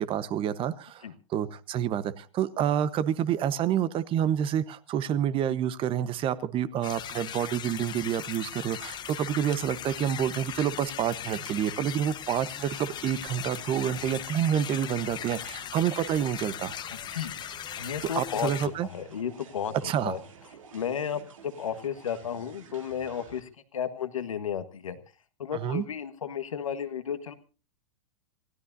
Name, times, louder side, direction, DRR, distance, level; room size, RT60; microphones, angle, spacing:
voice 1, 0.0-16.7 18.1-18.9 19.8-20.1 25.5-25.9, right 10 dB, 35° right, 16 dB, 1.1 m, -28 dB
sound 1, 6.8-18.7, left 10 dB, 25° left, 0.9 m, -39 dB
sound 2, 12.7-23.4, right 6 dB, 80° right, 3.1 m, -51 dB
voice 2, 17.1-18.5 18.8-20.2 20.7-25.0 25.4-27.3, left 8 dB, 85° left, 10 dB, 1.6 m, -33 dB
27.5 x 16.0 x 2.7 m, 0.35 s
hypercardioid pair, 110°, 17 cm